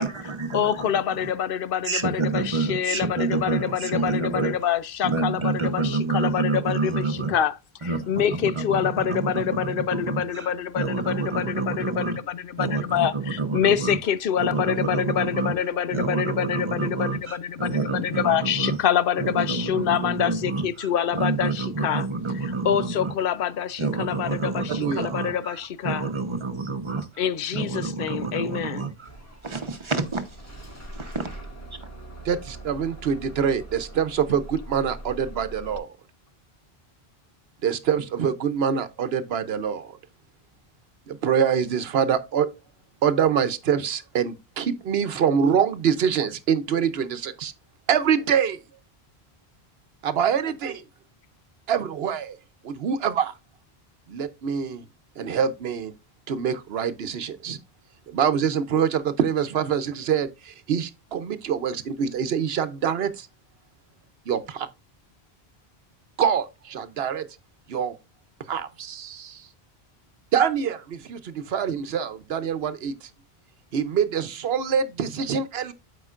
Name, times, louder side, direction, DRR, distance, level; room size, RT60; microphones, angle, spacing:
voice 1, 0.0-1.3 1.8-4.6 5.0-7.4 7.8-10.5 10.7-12.2 12.6-14.0 14.4-15.5 15.9-18.8 19.2-23.1 23.8-27.2 27.5-29.1 29.4-30.4 30.9-31.4 31.7-31.8, right 3 dB, 30° right, 1.0 m, -28 dB
voice 2, 0.5-22.1 22.6-26.1 27.2-28.9, left 9 dB, 65° left, 0.7 m, -26 dB
voice 3, 24.8-25.1 32.2-35.9 37.6-40.0 41.1-42.5 43.0-47.5 47.9-48.6 50.0-50.8 51.7-52.4 52.6-53.3 54.1-54.9 55.2-55.9 56.3-57.6 58.1-63.3 64.3-64.7 66.2-67.3 67.7-68.0 68.5-69.5 70.3-73.1 73.7-75.7, right 7 dB, 75° right, 1.0 m, -25 dB
Bus / Engine starting, 29.0-35.8, right 1 dB, 15° left, 1.8 m, -42 dB
12.5 x 5.0 x 2.4 m
omnidirectional pair, 1.1 m